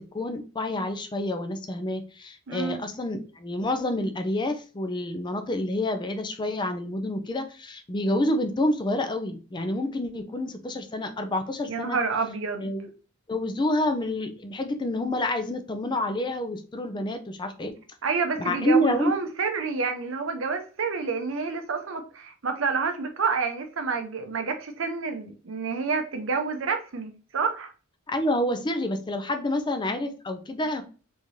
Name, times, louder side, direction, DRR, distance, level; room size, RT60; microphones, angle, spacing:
voice 1, 0.1-12.0 12.6-12.9 13.3-17.7 18.4-19.1 28.1-30.8, left 1 dB, 20° left, 0.5 m, -28 dB
voice 2, 2.5-2.8 11.7-12.7 18.0-27.7, right 4 dB, 65° right, 0.7 m, -28 dB
3.6 x 3.2 x 2.6 m
head